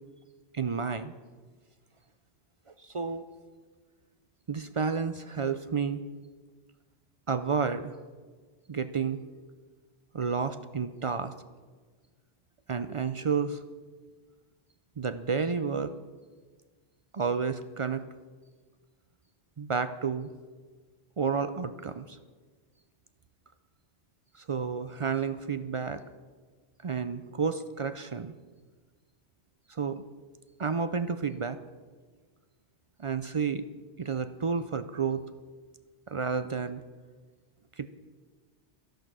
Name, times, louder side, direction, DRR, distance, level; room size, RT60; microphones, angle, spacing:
voice 1, 0.5-1.1 2.8-3.2 4.5-6.0 7.3-8.0 8.7-9.2 10.1-11.3 12.7-13.6 15.0-15.9 17.1-18.1 19.6-20.3 21.2-22.2 24.4-26.0 26.8-28.3 29.7-30.0 30.6-31.6 33.0-33.6 34.0-35.2 36.1-36.8 37.8-37.9, right 5 dB, 50° right, 11 dB, 0.3 m, -31 dB
13.5 x 11.5 x 6.2 m, 1.4 s
omnidirectional pair, 1.2 m